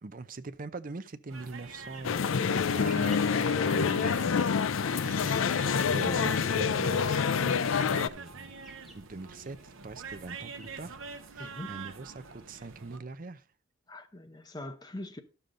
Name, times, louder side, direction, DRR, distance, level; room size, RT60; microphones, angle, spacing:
voice 1, 0.0-4.7 5.9-7.0 7.3-8.5 8.9-11.0 11.3-13.4, right 3 dB, 40° right, 0.6 m, -42 dB
sound 1, 1.3-11.7, right 1 dB, ahead, 1.9 m, -56 dB
sound 2, 1.3-13.0, right 5 dB, 80° right, 0.9 m, -46 dB
sound 3, 2.0-8.1, left 6 dB, 80° left, 0.4 m, -27 dB
voice 2, 11.4-11.8 13.9-15.2, left 1 dB, 20° left, 0.8 m, -43 dB
11.5 x 6.8 x 3.8 m
head